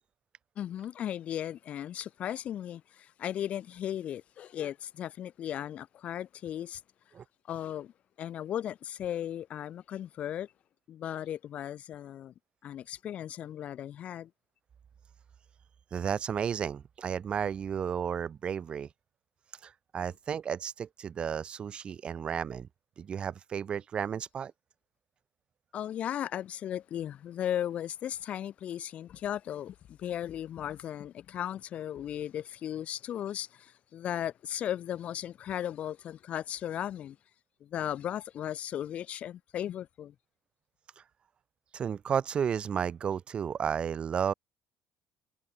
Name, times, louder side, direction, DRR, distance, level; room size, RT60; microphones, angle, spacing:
voice 1, 0.6-6.8 7.5-7.9 8.2-10.5 10.9-12.3 12.6-14.3 25.7-37.2 37.6-40.1, left 10 dB, 50° left, 4.0 m, -36 dB
voice 2, 15.9-18.9 19.6-22.7 23.0-24.5 41.0-41.1 41.7-44.3, right 7 dB, 40° right, 3.1 m, -33 dB
cardioid pair, 130°, 3 cm